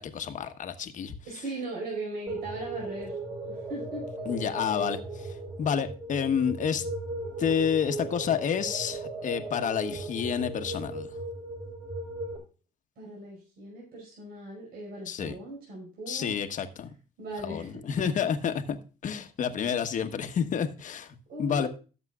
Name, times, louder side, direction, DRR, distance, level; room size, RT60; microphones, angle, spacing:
voice 1, 0.0-1.1 4.3-6.8 7.4-11.1 15.1-15.4 16.1-16.9 17.4-18.8 19.0-21.7, left 7 dB, 50° left, 1.2 m, -29 dB
voice 2, 1.2-4.1 13.0-16.4 17.2-17.8 21.3-21.7, right 2 dB, 65° right, 5.2 m, -39 dB
sound 1, 2.3-12.4, right 2 dB, 30° right, 4.4 m, -37 dB
17.0 x 7.3 x 2.4 m
cardioid pair, 110°, 17 cm